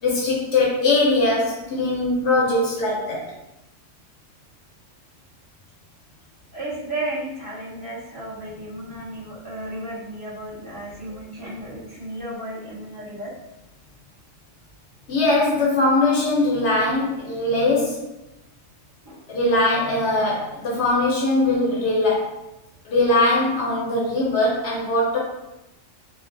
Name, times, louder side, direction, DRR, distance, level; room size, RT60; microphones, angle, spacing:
voice 1, 0.0-3.2 15.1-18.0 19.3-22.3 22.8-25.2, left 2 dB, 65° left, -4 dB, 0.9 m, -21 dB
voice 2, 6.5-13.3 19.0-19.2, right 1 dB, 20° right, -11 dB, 1.3 m, -33 dB
3.1 x 2.4 x 2.5 m, 0.94 s
omnidirectional pair, 1.3 m